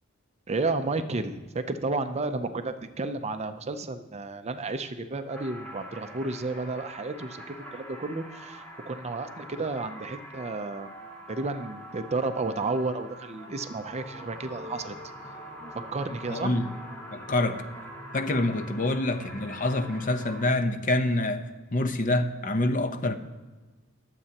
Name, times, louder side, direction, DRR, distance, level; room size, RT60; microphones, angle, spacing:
voice 1, 0.5-10.9 11.3-15.0 15.7-16.6, right 3 dB, 35° right, 0.6 m, -32 dB
sound 1, 5.3-20.4, equal, 10° left, 2.4 m, -44 dB
voice 2, 16.3-16.7 17.1-17.7 18.1-21.5 21.7-23.2, left 2 dB, 40° left, 0.8 m, -26 dB
22.0 x 7.6 x 2.9 m
head